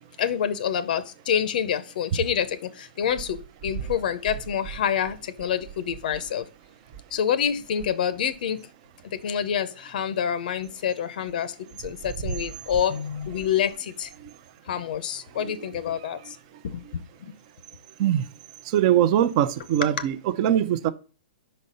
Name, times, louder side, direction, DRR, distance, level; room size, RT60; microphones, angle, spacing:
voice 1, 0.2-6.5 7.1-8.6 9.0-14.1 14.7-16.4 16.6-17.3 20.0-20.1, left 8 dB, 60° left, 0.6 m, -27 dB
voice 2, 18.6-20.9, right 11 dB, 40° right, 0.6 m, -22 dB
5.5 x 4.2 x 5.3 m
hypercardioid pair, 140°, 5 cm